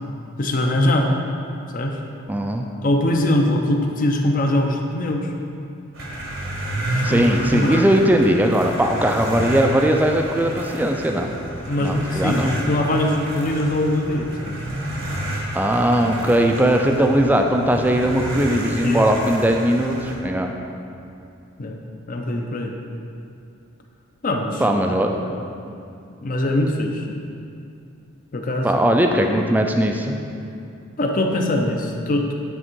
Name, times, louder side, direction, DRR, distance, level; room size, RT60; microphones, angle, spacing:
voice 1, 0.4-1.1 1.7-2.0 2.8-5.3 7.1-7.3 7.5-7.9 11.7-14.5 18.8-19.1 21.6-21.8 22.1-22.7 24.2-24.8 25.1-25.4 26.2-27.1 28.3-28.8 31.0-32.3, left 1 dB, 40° left, 3 dB, 0.5 m, -22 dB
voice 2, 2.3-2.7 7.0-11.3 11.8-12.5 15.5-20.5 24.6-25.1 28.6-30.2, right 1 dB, 10° right, 3 dB, 0.3 m, -19 dB
sound 1, 5.9-20.2, right 1 dB, 65° right, 1.0 m, -30 dB
9.1 x 3.5 x 4.5 m, 2.6 s
head